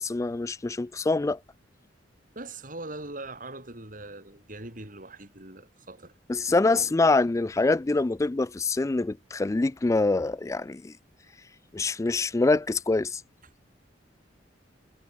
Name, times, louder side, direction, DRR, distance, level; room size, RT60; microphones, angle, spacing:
voice 1, 0.0-1.4 6.3-10.9 11.7-13.2, left 3 dB, 15° left, 0.3 m, -25 dB
voice 2, 2.4-6.1 6.5-6.9, right 2 dB, 50° right, 7.2 m, -41 dB
head